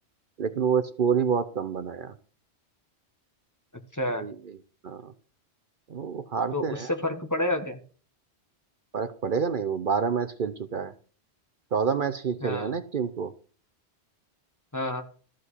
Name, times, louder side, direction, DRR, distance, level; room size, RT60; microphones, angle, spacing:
voice 1, 0.4-2.1 4.2-4.3 4.8-5.1 5.9-6.9 8.9-10.9 11.7-13.3, right 6 dB, 55° right, 10 dB, 0.9 m, -28 dB
voice 2, 3.9-4.3 6.5-7.8 12.4-12.7 14.7-15.0, left 1 dB, 15° left, 5 dB, 1.3 m, -29 dB
14.0 x 5.1 x 8.2 m, 0.41 s
omnidirectional pair, 1.1 m